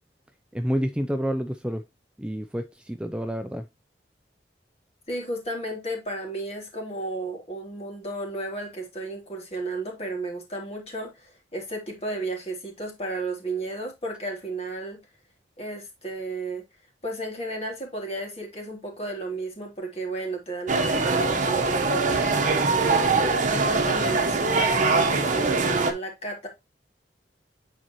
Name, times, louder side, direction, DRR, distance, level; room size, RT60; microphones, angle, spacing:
voice 1, 0.5-1.8 2.2-3.6, equal, 5° right, 0.4 m, -29 dB
voice 2, 5.1-15.0 15.6-16.6 17.0-23.2 23.5-26.5, right 2 dB, 35° left, 2.9 m, -33 dB
sound 1, 20.7-25.9, right 3 dB, 45° right, 1.1 m, -23 dB
9.1 x 4.2 x 3.0 m
head